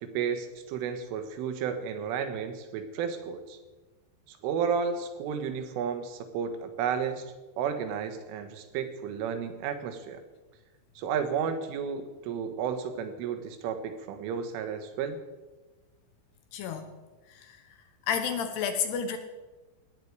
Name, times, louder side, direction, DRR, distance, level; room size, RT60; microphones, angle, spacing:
voice 1, 0.0-3.6 4.3-7.3 7.6-10.2 11.0-15.2, right 7 dB, 85° right, 8 dB, 3.9 m, -32 dB
voice 2, 16.5-16.9 17.3-17.6 18.1-19.2, left 7 dB, 70° left, 7 dB, 2.9 m, -31 dB
18.5 x 16.0 x 4.8 m, 1.2 s
omnidirectional pair, 5.5 m